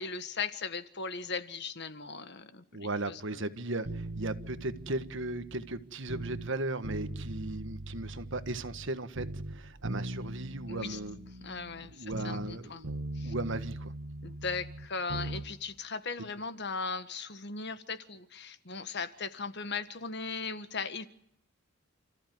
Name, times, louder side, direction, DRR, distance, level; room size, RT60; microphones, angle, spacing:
voice 1, 0.0-3.2 10.7-11.0 11.4-12.8 13.1-13.3 14.2-21.1, left 4 dB, 50° left, 11 dB, 1.6 m, -38 dB
voice 2, 2.7-11.2 11.9-12.9 13.2-13.9 16.2-16.3, right 2 dB, 55° right, 11 dB, 1.5 m, -36 dB
sound 1, 3.8-6.5 6.8-8.9 9.1-12.6 12.8-15.5 15.7-15.8, right 1 dB, 75° right, 1.8 m, -40 dB
29.5 x 15.0 x 9.5 m, 0.71 s
head